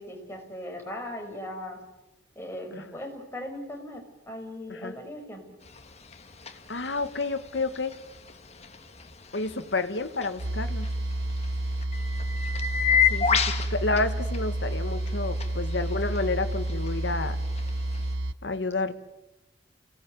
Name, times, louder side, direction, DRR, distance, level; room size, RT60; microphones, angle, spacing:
voice 1, 0.0-1.8 2.4-5.4, left 1 dB, 15° left, 2 dB, 5.5 m, -38 dB
sound 1, 5.6-18.1, left 7 dB, 35° left, 2.0 m, -32 dB
voice 2, 6.7-7.9 9.3-10.9 13.1-13.3 13.7-17.4 18.4-18.9, left 3 dB, 75° left, 9 dB, 1.7 m, -30 dB
sound 2, 10.4-18.3, right 1 dB, 70° right, 0.9 m, -30 dB
29.0 x 18.0 x 9.4 m, 0.98 s
head